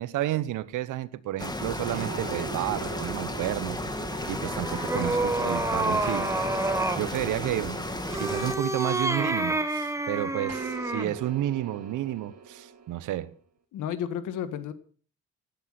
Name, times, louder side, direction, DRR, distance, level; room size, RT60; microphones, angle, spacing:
voice 1, 0.0-3.8 4.3-6.3 7.0-7.8 8.1-13.3, right 13 dB, 85° right, 1.1 m, -31 dB
sound 1, 1.4-8.5, left 1 dB, 15° left, 2.3 m, -33 dB
sound 2, 1.9-5.5 6.0-9.7 10.5-13.2, right 6 dB, 60° right, 2.7 m, -43 dB
sound 3, 4.1-7.1 8.0-11.2, right 2 dB, 10° right, 1.7 m, -29 dB
voice 2, 13.7-14.7, left 9 dB, 85° left, 1.6 m, -32 dB
16.0 x 11.0 x 6.0 m
cardioid pair, 90°, 30 cm